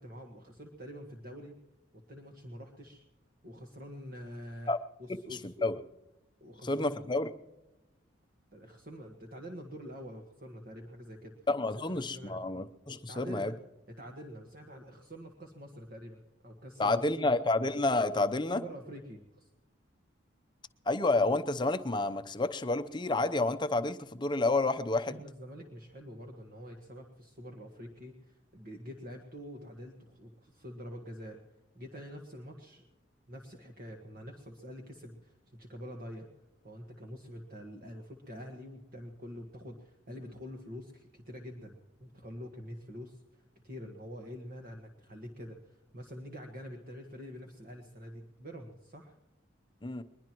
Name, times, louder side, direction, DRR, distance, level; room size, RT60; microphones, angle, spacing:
voice 1, 0.0-1.5 2.1-3.0 3.4-4.7 5.0-5.7 6.4-7.0 8.5-11.3 11.8-12.4 13.1-13.6 13.9-17.3 18.5-19.5 24.9-31.4 31.7-32.9 33.3-36.3 36.6-41.7 42.0-49.1, equal, 45° right, 3 dB, 1.5 m, -46 dB
voice 2, 5.4-5.8 6.6-7.3 11.5-13.5 16.8-18.6 20.9-25.2 49.8-50.0, left 2 dB, 25° left, 9 dB, 0.7 m, -29 dB
21.5 x 21.5 x 3.0 m, 1.0 s
head